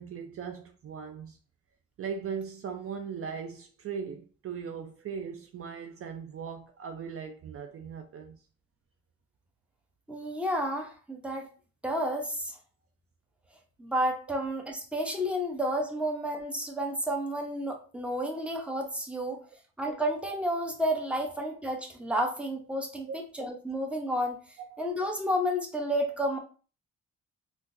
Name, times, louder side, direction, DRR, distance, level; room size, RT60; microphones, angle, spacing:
voice 1, 0.0-1.4 2.0-8.4 23.1-23.2 24.6-24.8, right 6 dB, 50° right, 0.5 m, -39 dB
voice 2, 10.1-11.5 11.8-12.6 13.8-19.4 19.8-24.4 24.8-26.4, equal, 5° right, 0.8 m, -31 dB
3.6 x 2.5 x 2.7 m
cardioid pair, 90°, 30 cm